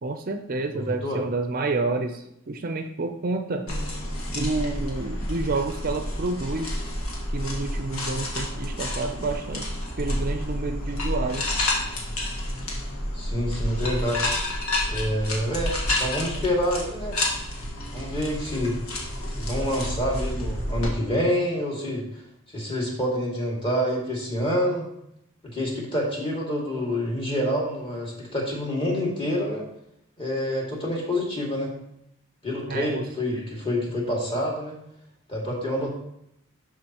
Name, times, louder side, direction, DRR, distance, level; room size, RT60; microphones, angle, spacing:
voice 1, 0.0-3.7 4.3-6.8 7.3-9.7 10.0-11.6 32.7-33.0, right 3 dB, 40° right, 6 dB, 0.5 m, -29 dB
voice 2, 0.7-1.2 13.1-14.3 14.9-17.2 17.9-18.8 19.4-22.2 22.5-24.8 25.4-29.7 30.2-31.7 32.4-34.8 35.3-35.9, equal, 25° left, -3 dB, 2.1 m, -27 dB
sound 1, 3.7-20.9, left 1 dB, 90° left, 1.7 m, -30 dB
11.5 x 5.1 x 2.9 m, 0.77 s
head